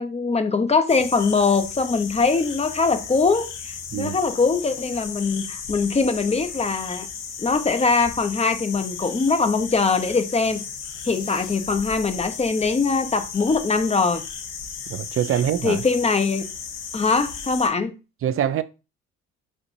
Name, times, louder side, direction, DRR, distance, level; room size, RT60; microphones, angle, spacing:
voice 1, 0.0-7.1 7.4-10.6 11.1-14.2 15.6-16.4 16.9-17.9, left 4 dB, 20° left, 0.6 m, -22 dB
sound 1, 0.9-17.7, left 6 dB, 90° left, 1.0 m, -35 dB
voice 2, 14.9-15.8 18.2-18.6, right 10 dB, 45° right, 0.4 m, -24 dB
4.3 x 3.9 x 2.6 m
cardioid pair, 90°, 30 cm